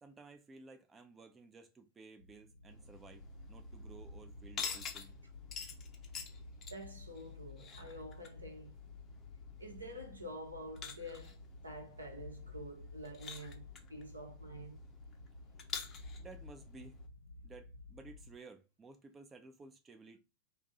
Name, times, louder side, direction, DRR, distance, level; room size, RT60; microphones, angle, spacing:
voice 1, 0.0-5.1 16.2-17.0 17.4-20.2, right 3 dB, 15° right, 0.4 m, -55 dB
sound 1, 2.2-18.3, left 3 dB, 80° left, 0.3 m, -53 dB
sound 2, 2.7-17.1, left 6 dB, 30° left, 0.6 m, -49 dB
voice 2, 6.7-8.7 9.6-11.4 11.6-14.8, equal, 85° right, 0.8 m, -48 dB
2.6 x 2.3 x 3.9 m
figure-of-eight pair, 90°, 0 cm